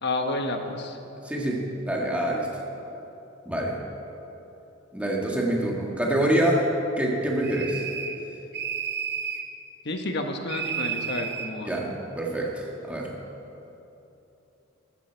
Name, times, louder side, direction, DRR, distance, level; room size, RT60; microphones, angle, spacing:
voice 1, 0.0-1.0 9.8-11.7, left 2 dB, 60° left, 4 dB, 1.2 m, -30 dB
voice 2, 1.2-2.5 3.4-3.8 4.9-6.7 7.0-7.8 11.6-13.1, right 1 dB, 5° right, -2 dB, 1.6 m, -26 dB
sound 1, 7.4-8.2 8.5-9.5 10.5-11.5, right 7 dB, 60° right, 1.0 m, -32 dB
14.5 x 13.5 x 4.6 m, 2.9 s
head